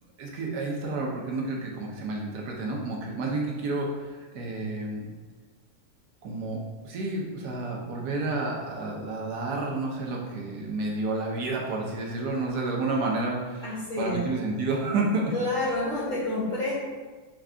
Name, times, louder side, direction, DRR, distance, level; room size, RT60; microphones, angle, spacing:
voice 1, 0.2-5.1 6.2-13.7 14.0-15.3 15.6-15.7, right 2 dB, 80° right, -1 dB, 1.3 m, -30 dB
voice 2, 13.6-14.3 15.3-16.7, left 2 dB, 40° left, -7 dB, 1.0 m, -28 dB
4.6 x 2.3 x 3.6 m, 1.3 s
omnidirectional pair, 1.7 m